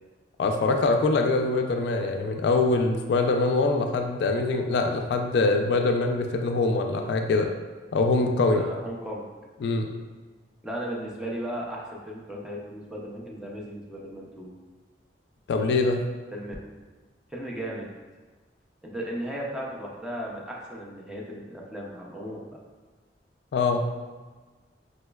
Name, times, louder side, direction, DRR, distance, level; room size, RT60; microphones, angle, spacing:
voice 1, 0.4-7.5 7.9-8.6 9.6-9.9 15.5-16.0 23.5-23.8, left 3 dB, 65° left, 4 dB, 0.3 m, -23 dB
voice 2, 8.5-9.3 10.6-14.5 16.3-16.5 17.3-17.9 18.8-22.6, equal, 5° right, -4 dB, 0.4 m, -36 dB
5.0 x 2.1 x 2.2 m, 1.3 s
head